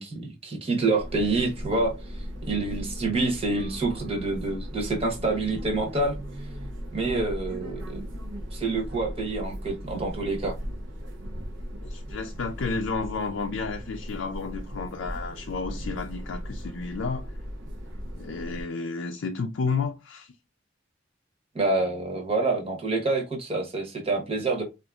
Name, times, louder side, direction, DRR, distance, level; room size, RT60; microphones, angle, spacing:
voice 1, 0.0-1.9 2.5-6.1 6.9-8.0 8.5-10.6 21.5-24.6, right 3 dB, 30° right, 0.9 m, -27 dB
sound 1, 1.0-18.6, equal, 75° right, 0.6 m, -37 dB
voice 2, 11.8-17.3 18.2-20.3, left 4 dB, 75° left, 0.4 m, -31 dB
3.8 x 2.5 x 2.3 m
head